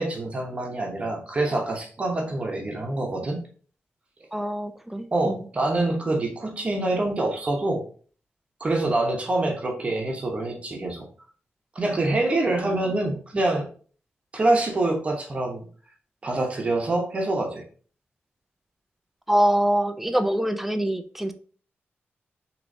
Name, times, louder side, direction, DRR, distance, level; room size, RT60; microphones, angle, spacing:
voice 1, 0.0-3.4 5.1-7.8 8.6-11.1 11.7-13.6 14.3-15.6 16.2-17.6, right 2 dB, 30° right, 2 dB, 0.9 m, -25 dB
voice 2, 4.3-5.5 19.3-21.3, right 1 dB, 5° right, 9 dB, 0.4 m, -24 dB
6.3 x 3.0 x 2.7 m, 0.42 s
wide cardioid pair, 175°, 4 cm